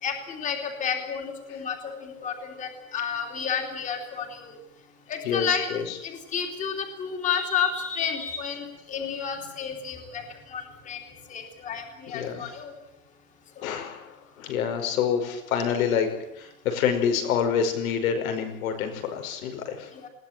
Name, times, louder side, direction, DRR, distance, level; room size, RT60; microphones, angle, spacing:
voice 1, 0.0-4.5 5.1-5.7 6.0-10.2 10.5-11.0 11.3-12.7 19.9-20.1, left 7 dB, 20° left, 4 dB, 3.0 m, -31 dB
voice 2, 5.2-6.0 12.1-12.6 13.6-19.9, left 7 dB, 75° left, 6 dB, 5.6 m, -27 dB
21.0 x 18.5 x 9.2 m, 0.84 s
supercardioid pair, 180°, 42 cm